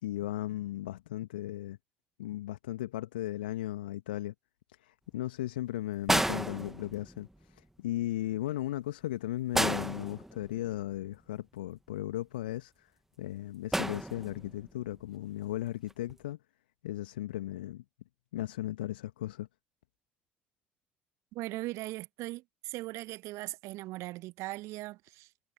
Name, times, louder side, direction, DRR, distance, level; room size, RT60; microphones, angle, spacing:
voice 1, 0.0-1.8 2.2-4.3 4.8-7.3 7.5-12.9 13.2-16.4 16.8-17.8 18.3-19.5, left 14 dB, 75° left, 2.2 m, -36 dB
sound 1, 6.1-7.3 9.5-10.8 13.7-14.6 15.9-16.1, right 1 dB, 5° right, 2.1 m, -32 dB
voice 2, 21.3-25.3, right 19 dB, 60° right, 1.7 m, -39 dB
figure-of-eight pair, 45°, 5 cm